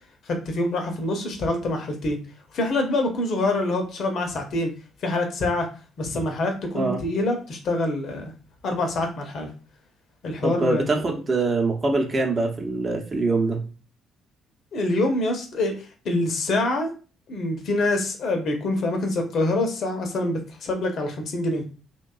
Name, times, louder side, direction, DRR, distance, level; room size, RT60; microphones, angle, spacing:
voice 1, 0.3-2.2 2.5-4.7 5.0-5.7 6.0-8.3 8.6-9.5 10.2-11.0 14.7-16.9 17.3-21.6, left 2 dB, 55° left, 4 dB, 0.6 m, -25 dB
voice 2, 10.4-13.6, right 3 dB, 35° right, 1 dB, 0.7 m, -24 dB
2.6 x 2.2 x 2.3 m, 0.35 s
figure-of-eight pair, 45°, 0 cm